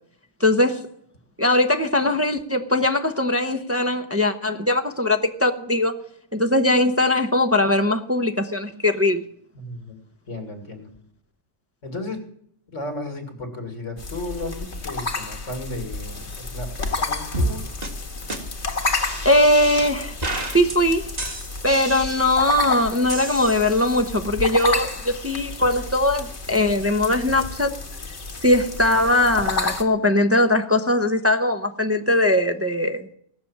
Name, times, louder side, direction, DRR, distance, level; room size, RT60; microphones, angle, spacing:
voice 1, 0.4-0.9 1.4-5.9 6.3-9.2 19.2-21.1 21.6-27.8 28.4-33.1, left 1 dB, 15° right, 0.8 m, -20 dB
voice 2, 9.5-10.0 10.3-10.9 11.8-12.2 12.7-17.6, left 2 dB, 75° left, 2.8 m, -34 dB
sound 1, 14.0-29.8, left 3 dB, 60° left, 2.0 m, -31 dB
sound 2, 17.3-17.5 17.8-17.9 18.3-18.4 18.8-19.9 20.2-20.8 21.2-22.6 23.1-24.0, right 1 dB, 35° right, 1.8 m, -30 dB
17.5 x 6.9 x 8.7 m
omnidirectional pair, 1.3 m